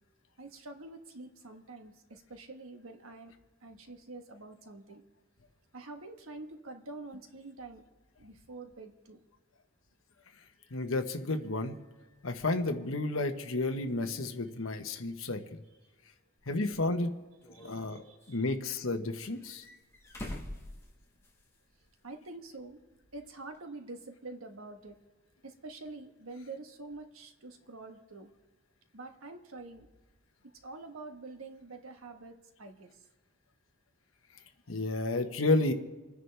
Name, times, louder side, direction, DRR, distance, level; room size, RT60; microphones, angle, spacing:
voice 1, 0.4-3.3 3.6-5.0 5.7-7.8 8.2-9.2 15.2-15.3 17.5-18.4 22.0-22.8 23.1-25.0 25.4-28.3 28.9-29.9 30.4-33.1, right 3 dB, 80° right, 5 dB, 1.3 m, -46 dB
voice 2, 10.7-11.8 12.2-15.4 16.5-17.1 17.6-18.0 18.3-19.6 34.7-35.7, left 2 dB, 75° left, 7 dB, 1.1 m, -31 dB
sound 1, 16.4-16.5 17.4-18.3 19.2-21.6 21.9-22.0 23.5-23.6, left 1 dB, 15° left, 1.6 m, -45 dB
28.0 x 10.0 x 3.4 m, 1.2 s
head